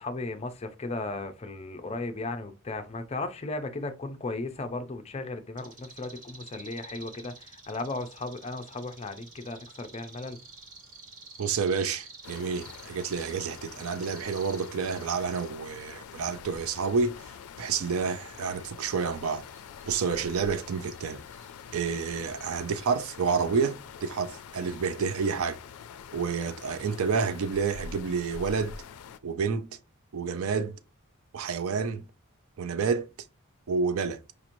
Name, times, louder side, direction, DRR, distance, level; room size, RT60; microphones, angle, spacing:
voice 1, 0.0-10.4, left 2 dB, 30° left, 0.5 m, -36 dB
sound 1, 5.6-15.6 16.0-17.1 18.6-22.6, right 3 dB, 40° right, 1.0 m, -50 dB
voice 2, 11.4-17.3 17.6-19.4 19.9-21.2 21.7-25.6 26.1-28.8 29.2-29.8 30.1-30.8 31.3-32.1 32.6-33.1 33.7-34.2, right 5 dB, 75° right, 0.4 m, -29 dB
sound 2, 12.2-29.2, left 7 dB, 85° left, 0.4 m, -45 dB
5.0 x 3.0 x 2.6 m
head